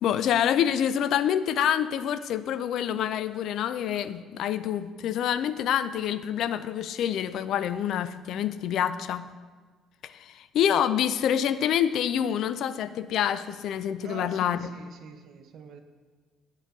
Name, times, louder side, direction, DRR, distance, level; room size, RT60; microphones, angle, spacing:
voice 1, 0.0-9.3 10.0-14.7, left 9 dB, 65° left, 13 dB, 0.3 m, -27 dB
voice 2, 14.0-15.8, right 6 dB, 60° right, 8 dB, 0.7 m, -44 dB
7.9 x 3.9 x 5.9 m, 1.4 s
hypercardioid pair, 60°, 0 cm